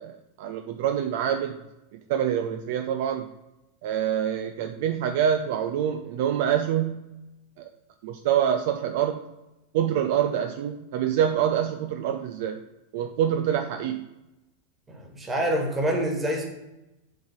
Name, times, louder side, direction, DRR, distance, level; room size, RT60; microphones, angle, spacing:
voice 1, 0.0-1.6 1.9-3.3 3.8-7.1 7.6-7.7 8.0-9.2 9.7-12.6 12.9-14.1, right 9 dB, 50° right, 7 dB, 0.4 m, -26 dB
voice 2, 14.9-16.4, right 1 dB, 15° right, 2 dB, 1.7 m, -26 dB
7.7 x 3.9 x 5.0 m, 0.96 s
figure-of-eight pair, 90°, 0 cm